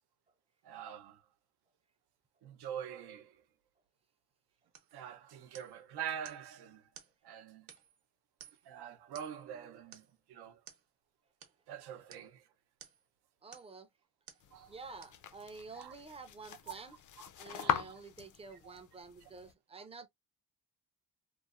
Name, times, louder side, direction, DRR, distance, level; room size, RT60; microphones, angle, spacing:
voice 1, 0.6-1.3 2.4-3.4 4.9-6.9 7.2-7.7 8.6-10.6 11.7-12.5 14.5-14.8 15.7-16.0 16.8-16.9 17.6-17.9 18.6-18.8, right 9 dB, 85° right, 0.7 m, -45 dB
sound 1, 4.7-5.0 5.5-5.8 6.2-6.5 6.9-7.2 7.7-8.0 8.4-8.7 9.1-9.5 9.9-10.2 10.7-10.9 11.4-11.6 12.1-12.3 12.8-13.1 13.5-13.8 14.3-14.5 15.0-15.2 15.8-15.9, right 8 dB, 60° right, 0.9 m, -56 dB
voice 2, 13.4-13.9 14.7-17.0 17.4-20.1, right 4 dB, 15° right, 0.4 m, -50 dB
sound 2, 14.4-19.5, left 9 dB, 50° left, 0.5 m, -41 dB
3.0 x 2.0 x 2.3 m
cardioid pair, 130°, 38 cm